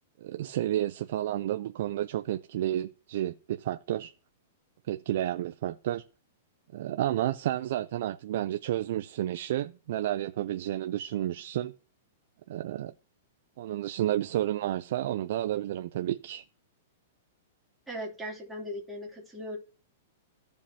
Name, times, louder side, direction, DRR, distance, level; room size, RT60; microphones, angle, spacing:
voice 1, 0.2-4.1 4.9-6.0 6.7-11.7 12.5-12.9 13.6-16.4, right 13 dB, 60° right, 0.5 m, -31 dB
voice 2, 17.9-19.6, equal, 5° right, 3.0 m, -38 dB
15.5 x 5.3 x 2.9 m
hypercardioid pair, 150°, 0 cm